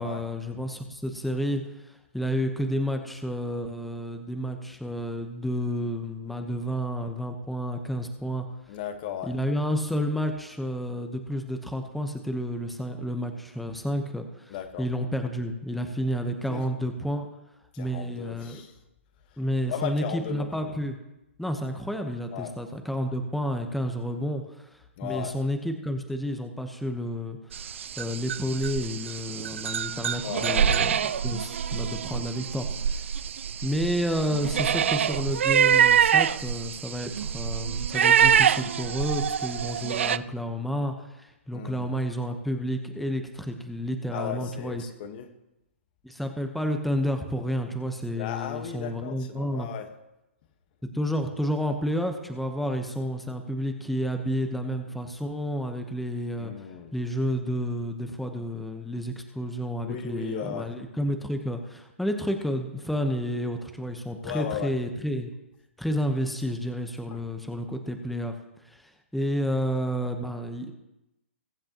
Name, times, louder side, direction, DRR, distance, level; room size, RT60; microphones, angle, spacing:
voice 1, 0.0-8.5 9.2-17.4 17.8-18.6 19.4-21.0 21.4-30.9 31.2-33.0 33.6-44.8 46.0-49.7 50.8-56.7 56.9-65.3 65.8-68.4 68.6-70.7, equal, ahead, 5 dB, 1.0 m, -30 dB
voice 2, 8.7-9.3 14.5-14.9 16.5-16.6 17.7-18.8 19.7-20.7 22.3-22.5 25.0-25.4 30.2-30.6 41.5-41.9 44.1-45.3 48.2-49.9 56.4-56.9 59.8-60.7 64.2-64.7, left 9 dB, 45° left, 8 dB, 1.4 m, -36 dB
sound 1, 27.5-40.2, right 8 dB, 70° right, 0.4 m, -25 dB
22.0 x 7.8 x 3.0 m, 0.93 s
hypercardioid pair, 130°, 7 cm